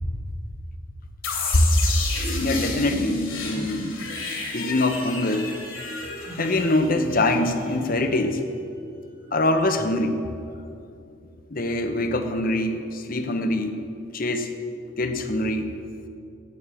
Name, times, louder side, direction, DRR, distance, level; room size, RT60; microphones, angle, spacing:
sound 1, 1.2-8.0, left 3 dB, 70° left, 3.0 m, -31 dB
voice 1, 2.4-3.9 4.5-5.5 6.4-8.4 9.3-10.2 11.5-13.8 14.1-14.5 15.0-15.7, left 2 dB, 40° left, 7 dB, 1.0 m, -23 dB
14.0 x 9.4 x 7.0 m, 2.6 s
head